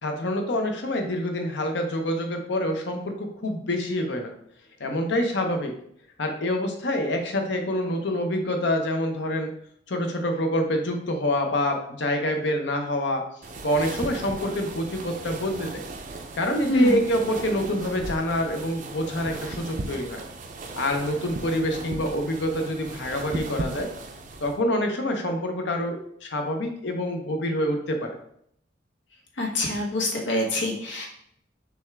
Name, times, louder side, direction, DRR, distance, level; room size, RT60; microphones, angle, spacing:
voice 1, 0.0-4.3 4.8-5.7 6.2-9.5 9.9-13.2 13.6-15.8 16.3-20.2 20.8-23.9 24.4-28.1, left 1 dB, 70° left, 4 dB, 0.8 m, -26 dB
sound 1, 13.4-24.6, right 2 dB, 45° right, 0.5 m, -37 dB
voice 2, 29.4-31.1, left 2 dB, 85° left, -2 dB, 1.3 m, -25 dB
6.2 x 2.4 x 3.3 m, 0.69 s
head